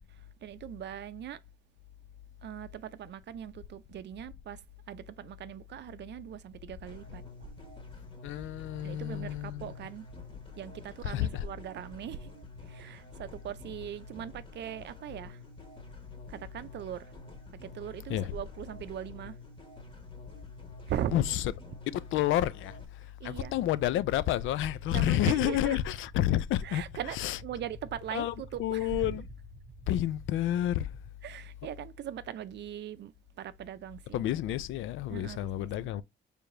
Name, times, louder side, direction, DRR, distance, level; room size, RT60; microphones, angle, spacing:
voice 1, 0.1-1.4 2.4-7.5 8.8-10.1 10.6-12.3 12.6-15.4 16.3-17.1 17.5-19.4 20.9-21.3 23.2-23.5 24.9-25.8 26.6-29.2 31.2-34.3 35.1-35.9, right 11 dB, 60° right, 0.5 m, -40 dB
sound 1, 6.9-22.9, left 2 dB, 25° left, 1.6 m, -49 dB
voice 2, 8.2-9.7 11.0-11.4 18.1-18.3 21.1-21.4 21.9-26.8 27.2-27.4 28.1-28.3 28.6-29.2 29.9-30.9 34.1-36.0, left 13 dB, 80° left, 0.4 m, -30 dB
sound 2, 23.3-31.1, right 1 dB, 15° right, 1.6 m, -51 dB
4.7 x 3.4 x 2.6 m
cardioid pair, 90°, 20 cm